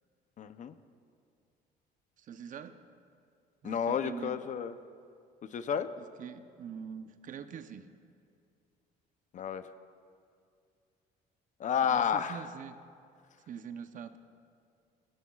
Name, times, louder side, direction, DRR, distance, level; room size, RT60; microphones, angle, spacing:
voice 1, 0.4-0.7 3.6-4.7 5.5-5.9 9.3-9.6 11.6-12.5, left 8 dB, 45° left, 11 dB, 0.6 m, -31 dB
voice 2, 2.2-2.8 3.6-4.4 6.0-7.9 11.8-12.8 13.5-14.2, right 7 dB, 50° right, 9 dB, 0.7 m, -44 dB
21.5 x 17.0 x 2.4 m, 2.3 s
cardioid pair, 110°, 17 cm